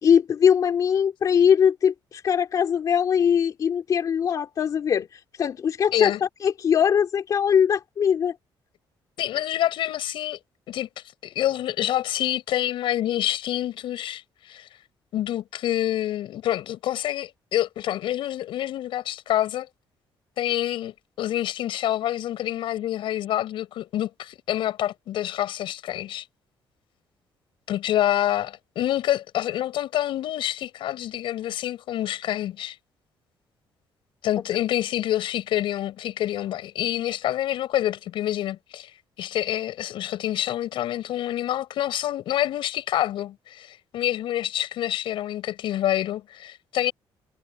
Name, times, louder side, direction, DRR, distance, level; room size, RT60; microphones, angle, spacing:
voice 1, 0.0-6.1 6.4-8.3, left 8 dB, 45° left, 2.9 m, -21 dB
voice 2, 9.2-10.4 10.7-10.9 11.2-14.2 14.5-14.7 15.1-19.7 20.4-26.2 27.7-32.8 34.2-38.9 39.2-46.9, left 12 dB, 75° left, 6.0 m, -27 dB
cardioid pair, 170°, 9 cm